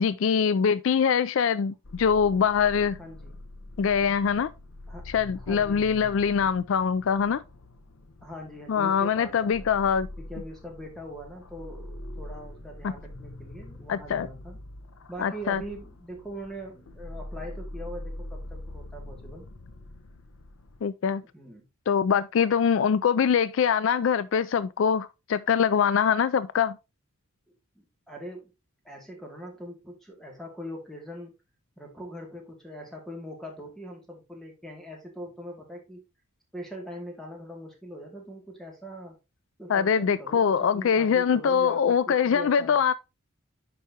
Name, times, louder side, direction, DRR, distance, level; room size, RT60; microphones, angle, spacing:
voice 1, 0.0-3.0 3.8-4.5 5.1-7.4 8.7-10.1 12.8-12.9 13.9-14.3 15.2-15.6 20.8-21.2 21.9-26.8 39.7-42.9, left 7 dB, 60° left, 0.3 m, -23 dB
sound 1, 1.8-20.9, left 1 dB, 80° left, 0.8 m, -44 dB
voice 2, 3.0-3.4 4.9-5.1 5.4-6.5 8.2-9.7 10.2-14.6 15.1-19.4 21.3-21.7 27.8-28.5 28.8-31.3 31.8-36.0 36.5-39.2 39.6-42.8, equal, ahead, 2.2 m, -42 dB
10.0 x 4.8 x 2.8 m
head